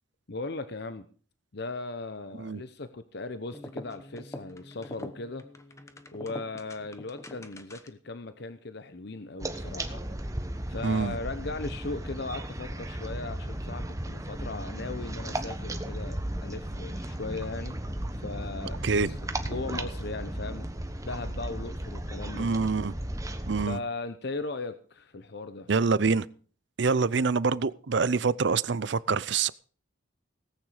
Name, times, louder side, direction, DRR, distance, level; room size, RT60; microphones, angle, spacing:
voice 1, 0.3-1.1 1.5-5.4 6.1-10.1 10.7-17.8 18.1-19.2 19.5-20.7 21.0-22.5 23.6-25.7, left 3 dB, 55° left, 0.8 m, -38 dB
sound 1, 3.5-8.1, left 1 dB, 15° left, 1.0 m, -44 dB
sound 2, 9.4-23.7, right 1 dB, 15° right, 1.2 m, -35 dB
voice 2, 10.8-11.2 18.8-19.1 22.3-22.9 23.4-23.8 25.7-26.3 26.8-29.5, right 4 dB, 60° right, 0.5 m, -26 dB
18.0 x 9.2 x 4.9 m
head